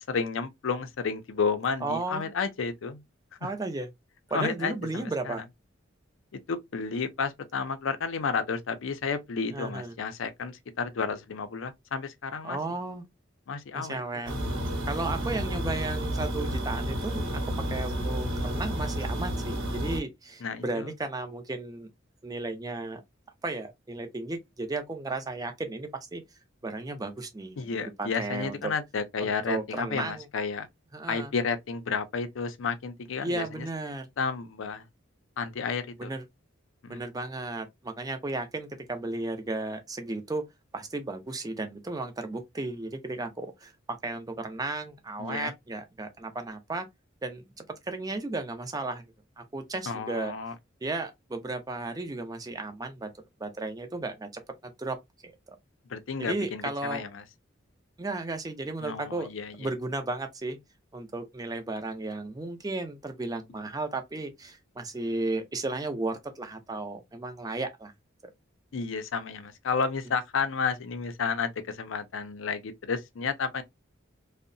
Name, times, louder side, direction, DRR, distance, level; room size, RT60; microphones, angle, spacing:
voice 1, 0.1-3.0 3.4-3.5 4.3-5.3 6.3-12.6 13.5-14.0 14.3-14.4 20.4-20.9 27.6-30.7 31.1-33.7 34.2-34.9 35.4-36.1 36.8-37.0 45.2-45.5 49.9-50.5 55.9-57.2 58.8-59.7 68.7-73.6, left 5 dB, 75° left, 0.5 m, -31 dB
voice 2, 1.8-2.3 3.4-3.9 4.3-5.5 9.5-9.9 12.4-13.0 13.7-14.3 14.9-17.4 17.7-21.9 22.2-23.0 23.4-26.2 26.6-28.7 29.2-30.3 30.9-31.3 33.2-34.1 36.0-36.2 36.9-40.4 40.7-46.9 47.2-49.0 49.4-50.3 50.8-53.1 53.4-54.3 54.8-55.0 55.2-55.3 56.2-57.0 58.0-59.3 59.6-60.6 60.9-67.9, right 2 dB, 20° right, 0.4 m, -34 dB
sound 1, 14.3-20.0, equal, 75° right, 0.8 m, -31 dB
2.7 x 2.0 x 2.5 m
head